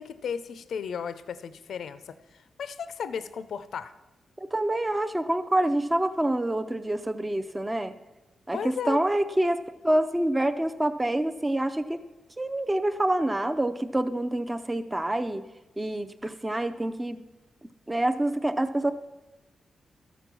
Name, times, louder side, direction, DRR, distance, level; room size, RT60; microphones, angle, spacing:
voice 1, 0.0-3.9 8.5-9.0, left 7 dB, 70° left, 12 dB, 0.5 m, -35 dB
voice 2, 4.4-7.9 8.5-12.0 12.4-15.5 15.8-17.2 17.9-18.9, right 1 dB, 10° right, 8 dB, 0.4 m, -27 dB
13.5 x 7.0 x 6.0 m, 1.1 s
wide cardioid pair, 155°, 0 cm